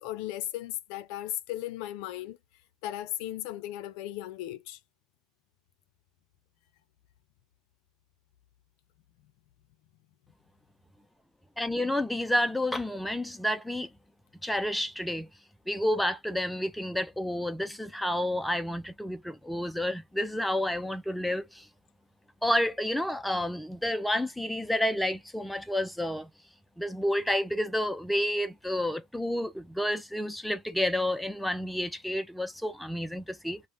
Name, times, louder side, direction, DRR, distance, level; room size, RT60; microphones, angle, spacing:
voice 1, 0.0-2.4 2.8-4.8, left 14 dB, 65° left, 0.4 m, -36 dB
voice 2, 11.6-13.9 14.4-15.3 15.7-21.7 22.4-26.3 26.8-33.6, left 1 dB, ahead, 0.3 m, -30 dB
2.5 x 2.1 x 3.2 m
cardioid pair, 155°, 0 cm